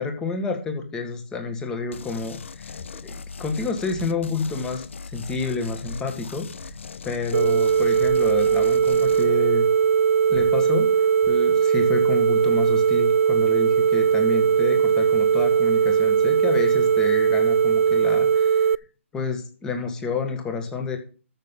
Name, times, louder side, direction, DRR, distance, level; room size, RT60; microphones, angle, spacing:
voice 1, 0.0-6.5 7.0-9.6 10.3-10.9 11.3-18.7 19.1-21.0, left 4 dB, 10° left, 5 dB, 1.8 m, -29 dB
sound 1, 1.9-9.3, left 5 dB, 65° left, 1.0 m, -39 dB
sound 2, 2.6-11.5, left 3 dB, 85° left, 3.8 m, -46 dB
sound 3, 7.3-18.8, right 7 dB, 80° right, 0.5 m, -19 dB
13.5 x 6.5 x 5.5 m, 0.36 s
hypercardioid pair, 165°, 7 cm